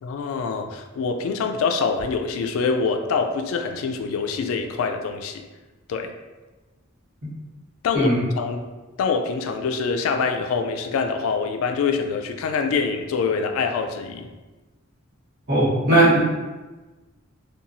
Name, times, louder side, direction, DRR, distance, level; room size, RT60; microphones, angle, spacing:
voice 1, 0.0-5.4 5.9-6.1 7.8-8.7 9.0-14.3, left 5 dB, 80° left, 7 dB, 0.3 m, -25 dB
voice 2, 15.5-16.2, right 1 dB, 55° right, -9 dB, 1.2 m, -17 dB
2.8 x 2.3 x 2.6 m, 1.2 s
head